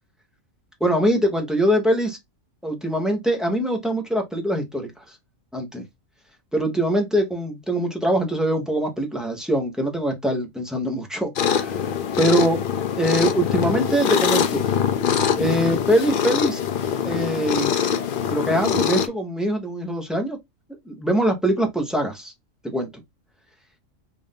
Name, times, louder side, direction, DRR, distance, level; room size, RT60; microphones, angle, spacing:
voice 1, 0.8-2.2 2.6-5.2 5.5-5.8 6.5-11.8 12.2-12.6 13.0-14.6 15.4-16.6 17.0-17.7 18.3-20.4 20.8-22.3 22.6-22.9, right 1 dB, ahead, 0.7 m, -23 dB
sound 1, 11.4-19.1, left 8 dB, 60° left, 0.5 m, -23 dB
3.8 x 2.6 x 3.6 m
omnidirectional pair, 1.4 m